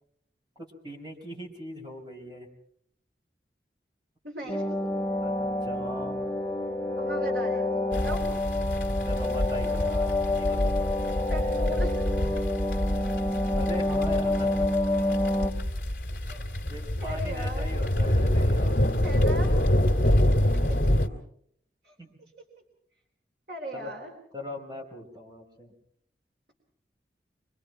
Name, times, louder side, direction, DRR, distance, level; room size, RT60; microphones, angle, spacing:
voice 1, 0.6-2.5 4.4-4.6 5.2-6.4 9.0-11.3 13.5-14.7 16.7-20.0 22.0-22.1 23.7-23.9 24.3-25.7, left 1 dB, 25° right, 0 dB, 4.6 m, -40 dB
voice 2, 4.2-4.8 7.0-8.3 11.3-12.0 16.3-16.4 17.0-17.7 19.0-19.6 21.8-21.9 23.5-24.1, equal, 65° right, 1 dB, 4.0 m, -38 dB
sound 1, 4.5-15.5, left 2 dB, ahead, 3.4 m, -28 dB
sound 2, 7.9-21.1, left 1 dB, 50° left, 2.4 m, -26 dB
25.0 x 24.5 x 4.6 m, 0.66 s
head